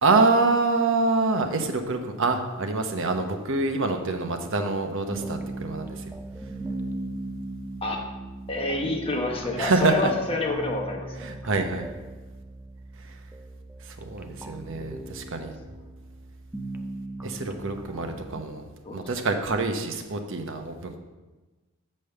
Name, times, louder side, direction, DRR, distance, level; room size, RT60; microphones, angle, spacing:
voice 1, 0.0-6.1 9.6-10.1 11.2-11.9 13.0-13.2 13.8-15.5 17.2-18.7 18.9-21.0, right 3 dB, 60° right, 5 dB, 0.9 m, -26 dB
sound 1, 5.1-18.4, right 2 dB, 10° right, 0.4 m, -38 dB
voice 2, 8.5-11.2 18.8-19.1, left 2 dB, 25° left, 1 dB, 1.0 m, -28 dB
6.6 x 5.3 x 6.7 m, 1.2 s
head